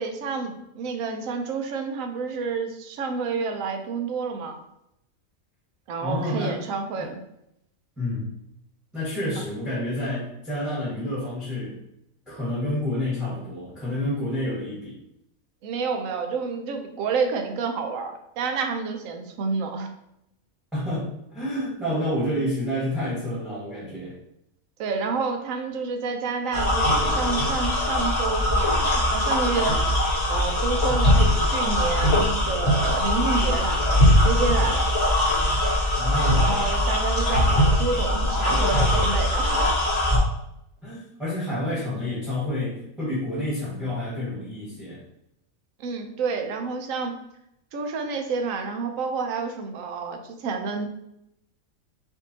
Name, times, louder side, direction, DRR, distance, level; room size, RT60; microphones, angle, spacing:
voice 1, 0.0-4.6 5.9-7.2 15.6-19.9 24.8-29.9 30.3-34.9 36.3-39.6 45.8-47.2 47.7-50.9, right 5 dB, 75° right, 5 dB, 1.0 m, -29 dB
voice 2, 6.0-6.6 8.0-8.3 8.9-11.8 12.3-15.0 20.7-24.2 36.0-36.6 40.8-45.0, left 1 dB, ahead, -8 dB, 1.3 m, -29 dB
sound 1, 26.5-40.2, left 1 dB, 50° left, 1.4 m, -21 dB
5.9 x 2.7 x 2.7 m, 0.79 s
omnidirectional pair, 1.5 m